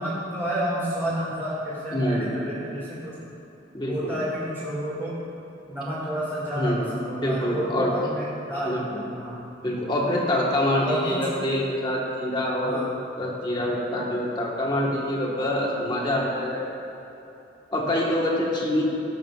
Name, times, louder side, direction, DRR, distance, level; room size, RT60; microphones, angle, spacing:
voice 1, 0.0-3.1 3.9-5.2 5.7-9.4 10.8-11.3 12.6-12.9 13.5-13.7 18.6-18.8, right 1 dB, 15° right, -12 dB, 2.0 m, -30 dB
voice 2, 1.9-2.3 3.7-4.1 6.5-6.9 7.2-8.0 8.6-9.0 9.6-12.9 13.2-16.6 17.7-18.8, left 1 dB, 25° left, -3 dB, 1.4 m, -25 dB
16.5 x 7.6 x 2.4 m, 3.0 s
head